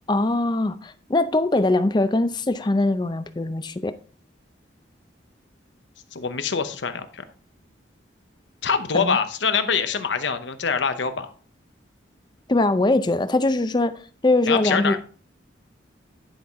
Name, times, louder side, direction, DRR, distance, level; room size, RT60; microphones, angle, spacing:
voice 1, 0.1-3.9 8.9-9.2 12.5-15.0, left 2 dB, 25° left, 0.4 m, -22 dB
voice 2, 6.1-7.2 8.6-11.3 14.5-15.0, left 5 dB, 75° left, 0.8 m, -24 dB
10.0 x 5.6 x 3.5 m
head